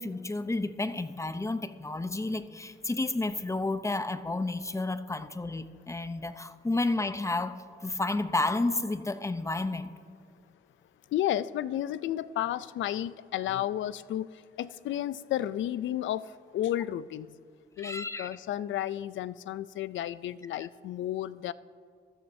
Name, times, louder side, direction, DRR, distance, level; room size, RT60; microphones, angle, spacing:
voice 1, 0.0-9.9 17.8-18.3, left 2 dB, 15° left, 11 dB, 0.6 m, -31 dB
voice 2, 11.1-17.3 17.8-21.5, left 12 dB, 85° left, 16 dB, 0.4 m, -32 dB
16.0 x 13.0 x 2.7 m, 2.2 s
cardioid pair, 85°, 19 cm